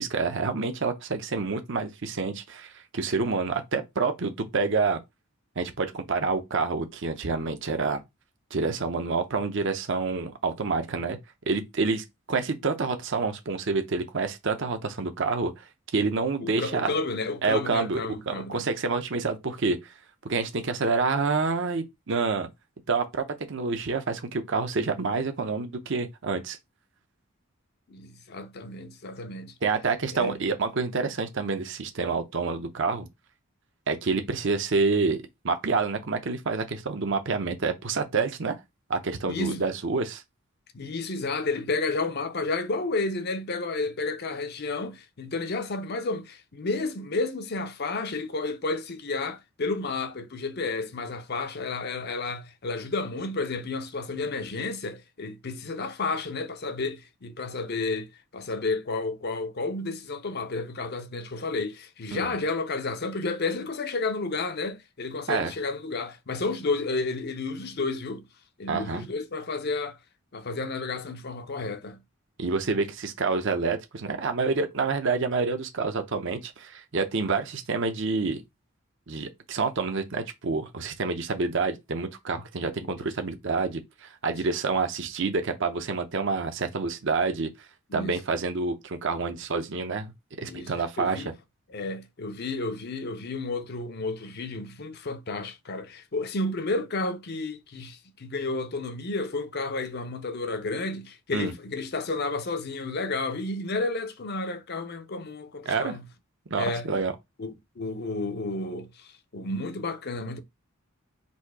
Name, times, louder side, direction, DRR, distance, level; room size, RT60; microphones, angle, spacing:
voice 1, 0.0-5.0 5.6-8.0 8.5-11.2 11.5-15.6 15.9-16.9 17.4-18.0 18.3-19.9 20.2-22.5 22.9-26.6 29.6-33.1 33.9-35.2 35.4-38.6 38.9-40.2 62.1-62.2 65.3-65.5 68.7-69.1 72.4-78.4 79.1-87.5 87.9-90.1 90.4-91.2 101.3-101.5 105.7-106.0 106.5-107.1, right 4 dB, 60° right, 0.7 m, -28 dB
voice 2, 16.4-18.7 27.9-29.5 30.1-30.4 39.2-39.6 40.7-68.2 68.6-70.0 70.3-72.0 82.8-82.9 87.9-88.2 90.4-91.3 91.7-106.0 106.6-106.9 107.4-110.4, left 3 dB, 50° left, 0.6 m, -31 dB
4.2 x 2.7 x 4.7 m
head